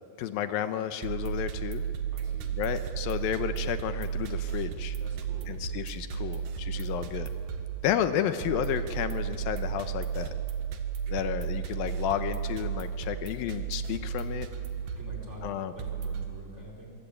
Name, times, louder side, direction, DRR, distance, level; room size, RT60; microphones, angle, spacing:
voice 1, 0.2-1.8 2.6-5.0 5.5-7.3 7.8-10.3 11.1-14.5 15.4-15.7, left 10 dB, 85° left, 10 dB, 2.7 m, -32 dB
sound 1, 1.0-16.2, right 8 dB, 70° right, 3.1 m, -34 dB
voice 2, 2.1-2.5 5.0-5.6 6.1-7.2 11.1-11.3 14.9-16.9, left 1 dB, 20° right, 0 dB, 4.6 m, -47 dB
24.5 x 23.5 x 8.6 m, 2.5 s
omnidirectional pair, 4.1 m